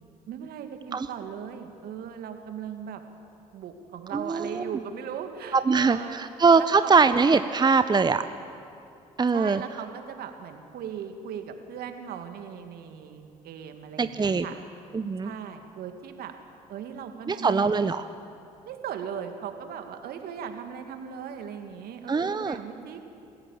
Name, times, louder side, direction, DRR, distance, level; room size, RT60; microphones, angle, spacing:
voice 1, 0.3-3.0 3.5-6.2 6.6-7.0 9.3-14.5 15.2-16.3 16.7-17.9 18.6-23.0, right 8 dB, 65° right, 6 dB, 2.1 m, -38 dB
voice 2, 4.1-4.7 5.5-8.3 9.2-9.6 14.0-14.5 14.9-15.3 17.3-18.1 22.1-22.6, right 4 dB, 25° right, 11 dB, 0.8 m, -22 dB
26.5 x 15.0 x 7.2 m, 2.6 s
hypercardioid pair, 50°, 17 cm